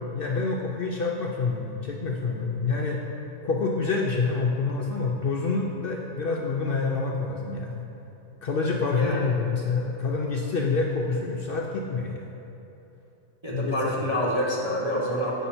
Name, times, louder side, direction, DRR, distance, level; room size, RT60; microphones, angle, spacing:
voice 1, 0.1-3.0 3.4-7.8 8.4-12.3 13.5-14.1, left 4 dB, 75° left, -1 dB, 0.5 m, -27 dB
voice 2, 13.4-15.5, equal, 25° right, -4 dB, 0.7 m, -27 dB
8.1 x 5.5 x 4.3 m, 3.0 s
omnidirectional pair, 1.6 m